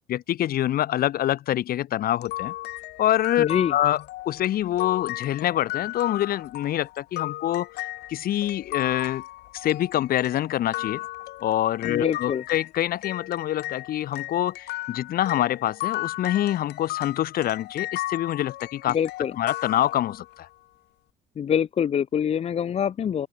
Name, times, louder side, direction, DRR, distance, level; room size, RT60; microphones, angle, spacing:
voice 1, 0.0-2.5 3.0-9.2 9.5-11.0 11.4-19.0 19.4-20.5, left 12 dB, 60° left, 1.4 m, -26 dB
sound 1, 2.2-12.7 13.0-20.4, left 18 dB, 85° left, 2.4 m, -35 dB
voice 2, 3.4-3.7 11.8-12.4 18.9-19.3 21.4-23.3, left 8 dB, 40° left, 0.7 m, -25 dB
open air
cardioid pair, 110°, 17 cm